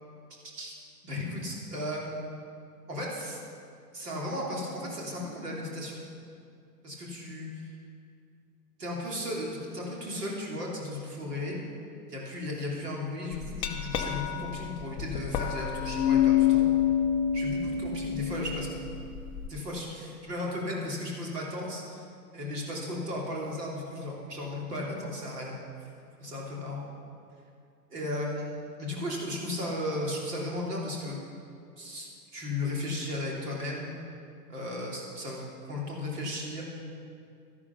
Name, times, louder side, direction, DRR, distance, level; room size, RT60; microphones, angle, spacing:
voice 1, 1.0-2.2 2.9-3.4 3.9-6.0 6.8-7.7 8.8-11.6 12.1-16.6 17.3-18.9 19.5-22.0 22.3-25.6 26.2-26.8 27.9-31.2 31.8-33.9 34.5-36.6, left 1 dB, 75° right, -3 dB, 3.3 m, -35 dB
Glass, 13.3-19.5, left 10 dB, 15° left, 0.3 m, -27 dB
12.5 x 11.0 x 5.8 m, 2.4 s
figure-of-eight pair, 90°, 48 cm